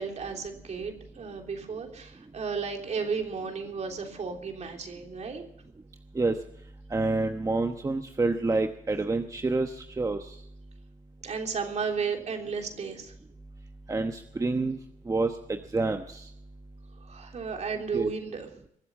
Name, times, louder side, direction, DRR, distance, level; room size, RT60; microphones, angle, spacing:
voice 1, 0.0-5.5 11.2-13.1 17.0-18.5, right 5 dB, 55° right, 3 dB, 3.3 m, -33 dB
voice 2, 6.9-10.4 13.9-14.8 15.0-16.3 17.9-18.1, right 3 dB, 25° right, 6 dB, 1.0 m, -28 dB
22.5 x 7.8 x 7.2 m, 0.74 s
cardioid pair, 80°, 14 cm